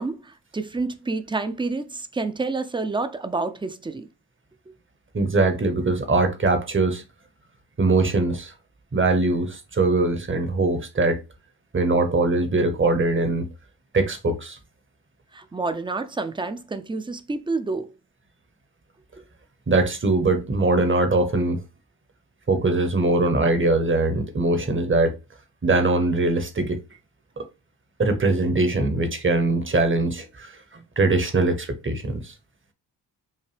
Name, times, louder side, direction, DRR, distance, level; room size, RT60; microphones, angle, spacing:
voice 1, 0.0-4.1 15.3-17.9, right 3 dB, 10° right, 0.5 m, -29 dB
voice 2, 5.1-7.0 7.8-8.5 8.9-11.2 11.7-13.5 13.9-14.6 19.7-21.6 22.5-25.2 25.6-26.8 27.4-27.5 28.0-32.3, right 2 dB, 30° right, 0.9 m, -22 dB
5.6 x 2.2 x 3.3 m
cardioid pair, 80°, 42 cm